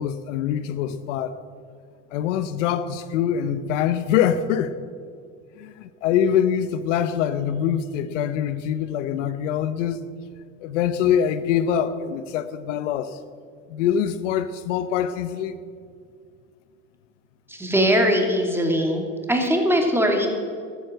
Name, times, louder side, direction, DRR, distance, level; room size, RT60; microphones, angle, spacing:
voice 1, 0.0-1.4 2.1-4.7 5.6-10.0 10.6-13.2 13.7-15.6, left 9 dB, 85° left, 0.8 m, -24 dB
voice 2, 17.5-20.3, equal, 5° right, 2.6 m, -21 dB
12.5 x 9.4 x 7.7 m
supercardioid pair, 90°, 36 cm